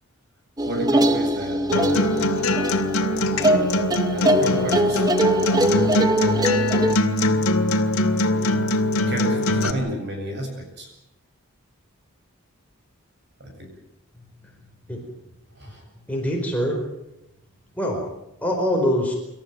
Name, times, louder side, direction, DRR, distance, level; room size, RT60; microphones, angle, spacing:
sound 1, 0.6-7.0, right 1 dB, 15° right, 0.8 m, -22 dB
voice 1, 0.6-2.1 4.1-6.0 9.1-10.9 13.4-13.7 15.5-15.8, equal, 50° right, 3 dB, 7.9 m, -32 dB
Acoustic guitar, 1.7-9.7, left 1 dB, 75° left, 2.2 m, -22 dB
voice 2, 16.1-16.8 17.8-18.0 18.4-19.1, equal, 5° left, 0 dB, 4.7 m, -23 dB
27.0 x 14.0 x 9.4 m, 0.88 s
head